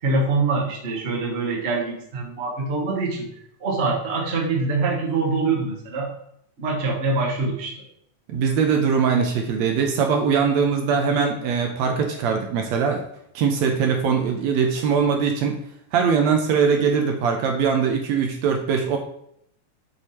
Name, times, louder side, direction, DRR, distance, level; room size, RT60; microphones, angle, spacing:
voice 1, 0.0-3.3 3.6-6.1 6.6-7.7, right 3 dB, 55° right, -1 dB, 0.7 m, -24 dB
voice 2, 8.3-13.0 13.4-15.6 15.9-19.0, right 6 dB, 75° right, 3 dB, 1.8 m, -21 dB
7.9 x 3.3 x 4.2 m, 0.72 s
omnidirectional pair, 3.6 m